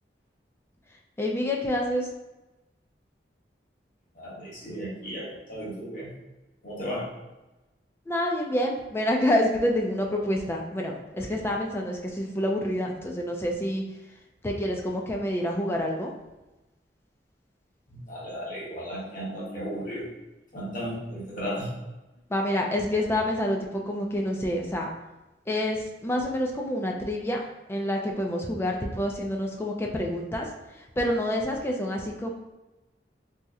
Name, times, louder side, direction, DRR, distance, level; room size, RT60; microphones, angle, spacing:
voice 1, 1.2-2.1 8.1-13.8 14.4-16.1 22.3-24.9 25.5-27.4 27.7-30.5 30.7-32.3, left 1 dB, 15° left, 1 dB, 0.4 m, -27 dB
voice 2, 4.1-6.1 6.6-7.1 17.9-20.1 20.5-21.7, equal, 50° left, -6 dB, 1.1 m, -35 dB
2.8 x 2.1 x 3.5 m, 1.0 s
head